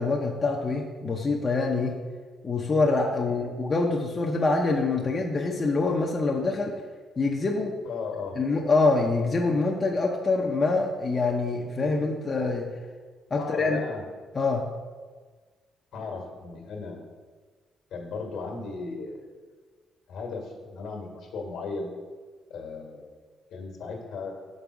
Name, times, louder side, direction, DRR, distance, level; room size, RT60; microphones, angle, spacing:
voice 1, 0.0-2.0 2.4-6.8 7.2-7.7 8.3-12.7 13.3-13.8 14.3-14.7, left 3 dB, 35° left, 0 dB, 0.7 m, -25 dB
voice 2, 7.8-8.4 13.4-14.0 15.9-17.0 17.9-19.3 20.1-21.9 22.5-23.1 23.5-24.3, left 4 dB, 75° left, 1 dB, 1.4 m, -36 dB
5.3 x 4.0 x 5.9 m, 1.4 s
cardioid pair, 90°, 0 cm